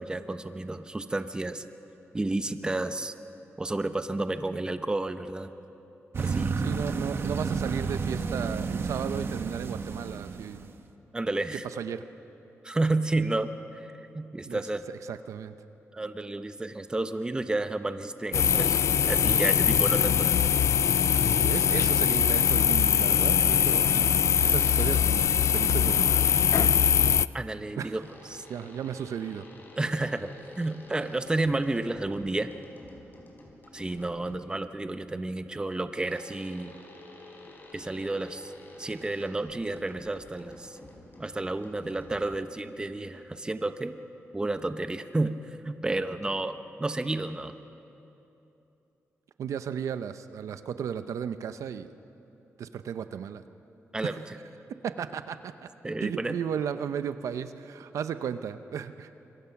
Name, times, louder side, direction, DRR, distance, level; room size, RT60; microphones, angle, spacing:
voice 1, 0.0-1.6 2.1-3.1 3.6-5.5 6.2-6.5 11.1-11.6 12.6-14.8 15.9-20.4 27.3-28.4 29.8-32.5 33.7-36.7 37.7-38.5 38.8-40.8 41.2-44.0 44.3-45.3 45.6-47.6 53.9-54.2 55.8-56.4, right 2 dB, 15° right, 9 dB, 0.9 m, -31 dB
sound 1, 6.1-10.7, right 5 dB, 50° right, 1.1 m, -31 dB
voice 2, 6.6-10.7 11.8-12.0 14.4-14.6 15.1-15.5 21.2-24.1 24.4-26.2 27.8-28.0 28.5-29.5 49.4-51.9 52.6-53.4 54.0-54.2 54.8-55.7 56.0-59.1, right 8 dB, 85° right, 11 dB, 0.7 m, -34 dB
sound 2, 18.3-27.3, left 8 dB, 65° left, 0.4 m, -22 dB
sound 3, 28.0-34.6 36.0-42.7, left 1 dB, 40° left, 4.1 m, -50 dB
26.0 x 22.5 x 5.9 m, 3.0 s
cardioid pair, 105°, 5 cm